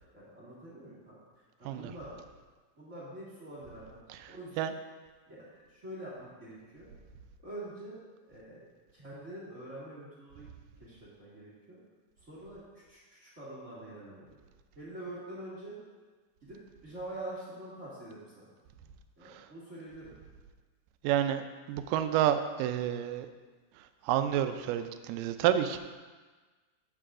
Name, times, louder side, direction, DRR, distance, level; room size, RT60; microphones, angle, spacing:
voice 1, 0.1-1.2 1.6-2.1 2.8-4.7 5.3-6.9 7.4-8.0 8.3-8.6 8.9-10.5 10.8-11.8 12.2-14.4 14.7-15.8 16.4-18.5 19.2-20.1, right 1 dB, 30° right, -8 dB, 1.7 m, -45 dB
voice 2, 21.0-23.3 23.8-25.8, right 10 dB, 80° right, 9 dB, 2.1 m, -29 dB
11.5 x 7.9 x 2.5 m, 1.4 s
omnidirectional pair, 4.0 m